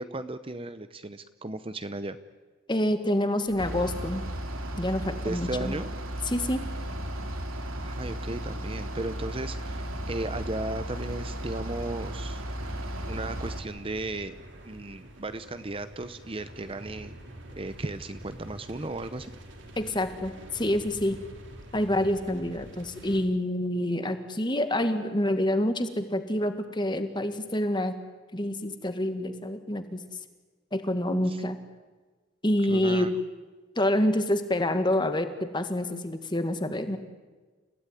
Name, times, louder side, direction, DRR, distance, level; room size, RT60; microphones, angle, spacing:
voice 1, 0.0-2.2 5.2-5.9 7.8-12.4 13.1-14.3 14.6-17.1 17.6-19.3 31.3-31.4 32.7-33.1, right 2 dB, 25° right, 11 dB, 0.7 m, -35 dB
voice 2, 2.7-4.2 4.8-5.7 6.3-6.6 19.8-21.2 21.7-27.9 28.3-30.0 30.7-31.6 32.4-33.1 33.8-37.0, left 1 dB, 20° left, 8 dB, 1.8 m, -27 dB
sound 1, 3.5-23.2, right 1 dB, 55° right, 3.6 m, -48 dB
Bus / Idling, 3.6-13.6, equal, 80° right, 2.7 m, -35 dB
30.0 x 16.5 x 9.9 m, 1.3 s
head